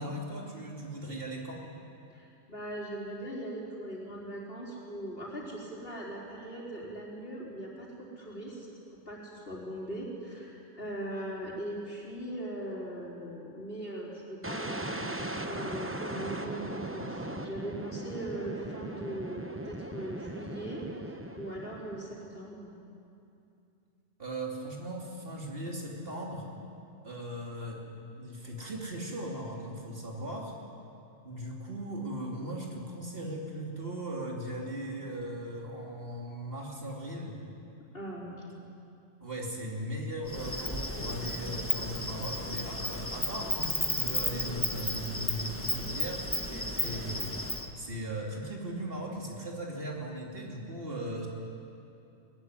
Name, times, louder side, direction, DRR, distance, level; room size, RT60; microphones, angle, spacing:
voice 1, 0.0-1.6 24.2-26.5 27.0-30.5 31.2-37.4 39.2-51.3, right 1 dB, 55° right, -1 dB, 3.2 m, -38 dB
voice 2, 2.1-8.7 9.1-22.7 37.9-38.5, right 1 dB, 55° left, -4 dB, 4.4 m, -40 dB
sound 1, 14.4-22.3, right 1 dB, 15° right, 0.9 m, -39 dB
Insect, 40.3-47.7, left 1 dB, 10° left, 1.4 m, -33 dB
20.0 x 15.5 x 9.8 m, 2.6 s
omnidirectional pair, 1.1 m